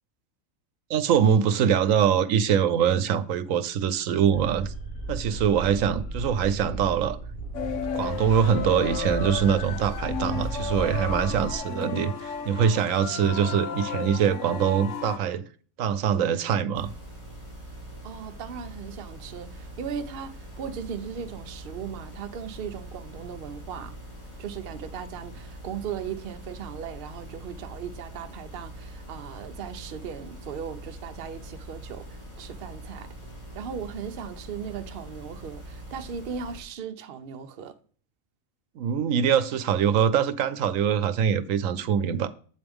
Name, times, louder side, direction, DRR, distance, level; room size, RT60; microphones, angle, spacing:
voice 1, 0.9-4.7 5.1-7.2 7.9-15.5 15.8-16.9 38.8-42.3, right 8 dB, 75° right, 1.0 m, -23 dB
sound 1, 4.3-11.6, right 2 dB, 85° left, 2.1 m, -35 dB
sound 2, 7.5-15.2, left 6 dB, 65° left, 1.1 m, -33 dB
sound 3, 16.7-36.6, right 1 dB, 30° left, 3.2 m, -43 dB
voice 2, 18.0-23.9 24.4-33.1 33.5-37.8, right 7 dB, 55° right, 0.7 m, -37 dB
8.1 x 6.8 x 3.5 m
omnidirectional pair, 1.4 m